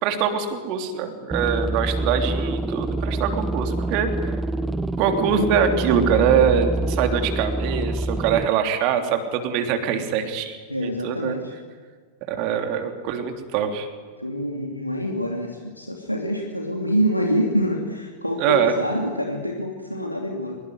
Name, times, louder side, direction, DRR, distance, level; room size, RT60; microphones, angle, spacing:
voice 1, 0.0-4.4 5.0-11.4 12.3-13.9 18.4-18.7, right 7 dB, 45° right, 5 dB, 3.2 m, -23 dB
sound 1, 1.3-8.5, right 2 dB, 10° right, 0.8 m, -26 dB
voice 2, 10.7-11.5 14.2-20.6, equal, 90° left, 1 dB, 2.9 m, -26 dB
24.0 x 22.0 x 9.6 m, 1.5 s
figure-of-eight pair, 90°, 0 cm